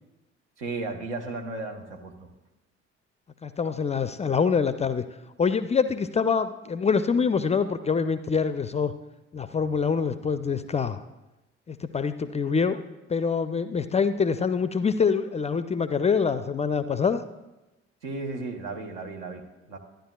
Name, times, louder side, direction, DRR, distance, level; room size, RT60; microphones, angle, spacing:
voice 1, 0.6-2.3 18.0-19.8, right 3 dB, 75° right, 3 dB, 1.0 m, -35 dB
voice 2, 3.4-5.0 5.4-8.9 9.3-11.0 11.7-12.8 13.1-17.2, left 5 dB, 20° left, 12 dB, 0.4 m, -25 dB
12.5 x 10.0 x 2.3 m, 1.0 s
figure-of-eight pair, 45°, 34 cm